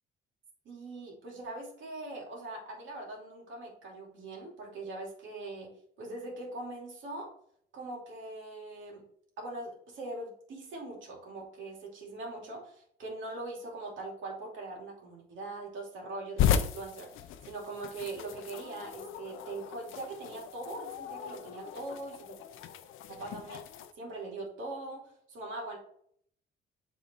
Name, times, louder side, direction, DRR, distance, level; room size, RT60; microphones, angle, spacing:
voice 1, 0.6-5.7 6.0-7.3 7.7-9.0 9.4-22.4 23.1-25.8, right 2 dB, 75° right, -2 dB, 2.6 m, -42 dB
sound 1, 16.4-23.9, left 9 dB, 90° left, 0.6 m, -35 dB
7.3 x 3.8 x 4.4 m, 0.64 s
cardioid pair, 90°, 20 cm